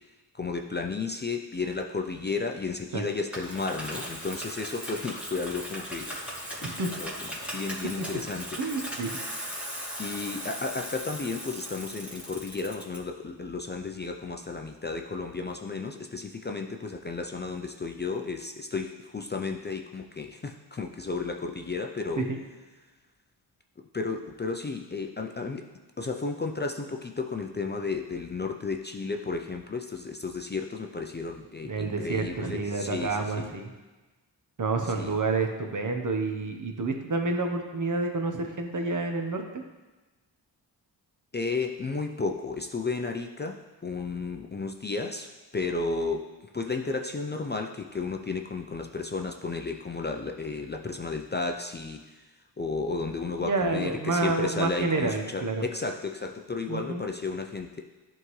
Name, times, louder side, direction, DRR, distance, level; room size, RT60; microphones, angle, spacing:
voice 1, 0.3-6.2 6.6-6.7 7.0-8.6 10.0-22.3 23.9-25.6 26.0-33.5 34.9-35.2 41.3-46.3 46.5-52.0 52.6-57.8, left 4 dB, 25° left, 3 dB, 0.4 m, -33 dB
Bicycle, 3.3-13.0, equal, 5° right, 2.0 m, -38 dB
voice 2, 6.6-6.9 8.6-9.1 22.2-22.4 31.6-33.7 34.6-39.4 53.4-55.6 56.7-57.0, right 3 dB, 45° right, 4 dB, 1.0 m, -29 dB
11.0 x 3.7 x 3.1 m, 1.2 s
cardioid pair, 55°, 42 cm